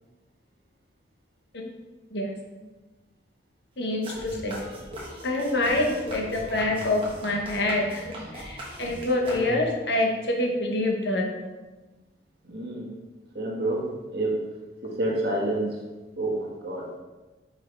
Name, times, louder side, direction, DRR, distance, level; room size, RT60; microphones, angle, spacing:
voice 1, 3.8-4.6 5.2-8.0 8.3-11.2, left 2 dB, 70° left, 1 dB, 1.1 m, -26 dB
sound 1, 4.0-9.8, equal, 30° right, 1.3 m, -39 dB
voice 2, 12.4-12.9 13.3-13.8 14.1-14.4 14.8-15.8 16.2-16.8, right 1 dB, 60° right, -3 dB, 1.5 m, -28 dB
5.5 x 5.4 x 3.3 m, 1.2 s
head